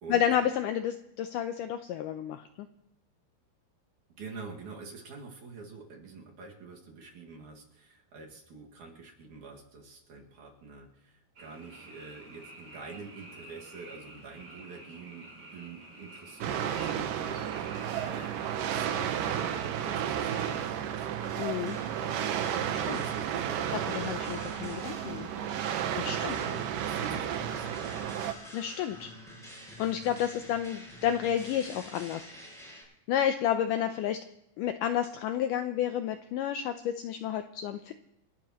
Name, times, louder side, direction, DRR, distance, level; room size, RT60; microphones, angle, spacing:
voice 1, 0.1-2.4 21.4-21.8 22.7-23.0 23.7-25.3 26.0-26.4 28.5-29.1 29.8-32.3 33.1-34.2 34.6-37.9, left 10 dB, 90° left, 8 dB, 1.8 m, -30 dB
voice 2, 4.2-21.1 22.7-24.0 26.0-28.0, right 4 dB, 55° right, -1 dB, 3.2 m, -47 dB
Frog, 11.4-20.7, right 1 dB, 30° right, 3.6 m, -50 dB
sound 1, 16.4-28.3, right 9 dB, 70° right, 2.2 m, -32 dB
sound 2, 21.2-32.8, equal, ahead, 6.9 m, -48 dB
29.0 x 12.0 x 3.0 m, 0.83 s
omnidirectional pair, 4.5 m